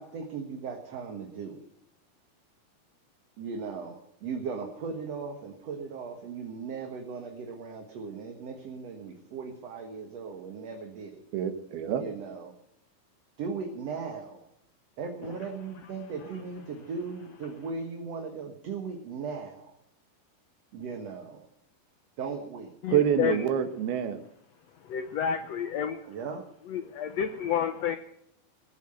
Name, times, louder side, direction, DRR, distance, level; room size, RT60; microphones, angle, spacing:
voice 1, 0.0-1.6 3.4-11.2 12.0-12.5 13.4-14.4 15.0-19.8 20.7-21.5 22.2-22.7 26.1-26.4, right 5 dB, 55° right, 3 dB, 2.2 m, -38 dB
voice 2, 11.3-12.0 22.9-24.2, right 9 dB, 85° right, 9 dB, 3.4 m, -26 dB
voice 3, 22.8-23.5 24.8-26.0 26.7-28.0, left 8 dB, 90° left, 9 dB, 1.4 m, -30 dB
20.5 x 8.5 x 7.8 m, 0.76 s
omnidirectional pair, 4.3 m